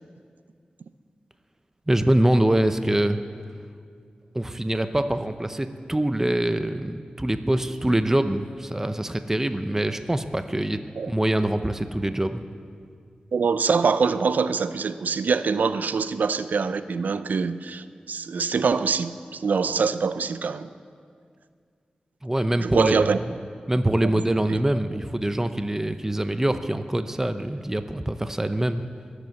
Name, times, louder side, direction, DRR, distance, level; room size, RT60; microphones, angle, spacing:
voice 1, 1.9-3.2 4.3-10.8 11.1-12.4 22.2-23.2 23.7-28.8, right 1 dB, 15° right, 10 dB, 0.7 m, -24 dB
voice 2, 13.3-20.7 22.6-23.2 24.5-24.6, right 5 dB, 85° right, 13 dB, 0.5 m, -24 dB
21.5 x 8.1 x 7.1 m, 2.2 s
wide cardioid pair, 60°, 3 cm